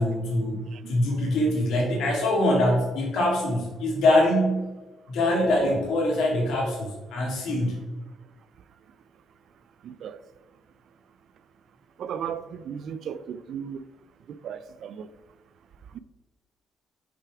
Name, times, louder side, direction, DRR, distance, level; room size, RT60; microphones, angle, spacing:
voice 1, 0.0-0.6 0.9-4.7 5.1-7.8, left 1 dB, 80° left, 1.9 m, -23 dB
voice 2, 9.8-10.2 12.0-13.8 14.3-15.1 15.9-16.0, right 8 dB, 70° right, 0.3 m, -36 dB
5.8 x 4.8 x 3.5 m
cardioid pair, 90°, 0 cm